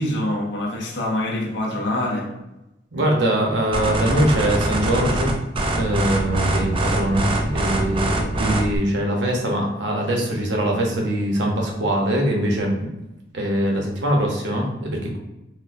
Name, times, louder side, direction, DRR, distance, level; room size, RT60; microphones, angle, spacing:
voice 1, 0.0-2.3, left 1 dB, 65° left, -2 dB, 0.7 m, -25 dB
voice 2, 2.9-5.4 5.7-12.9 13.3-15.2, right 1 dB, 70° right, 0 dB, 0.8 m, -22 dB
sound 1, 3.7-8.8, right 1 dB, 30° right, 0.4 m, -23 dB
4.2 x 2.1 x 2.5 m, 0.94 s
head